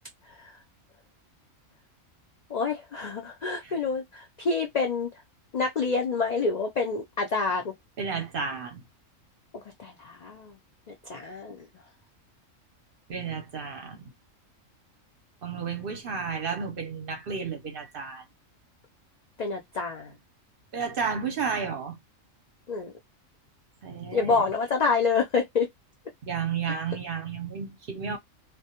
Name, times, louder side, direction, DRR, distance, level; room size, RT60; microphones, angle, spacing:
voice 1, 2.5-5.1 5.5-7.7 9.5-10.5 10.9-11.7 19.4-20.1 22.7-22.9 24.1-25.7 26.7-26.8, left 4 dB, 85° left, 0.3 m, -28 dB
voice 2, 8.0-8.8 13.1-14.0 15.4-18.2 20.7-22.0 23.8-24.4 26.2-28.2, right 6 dB, 55° right, 0.7 m, -32 dB
2.2 x 2.1 x 2.8 m
omnidirectional pair, 1.4 m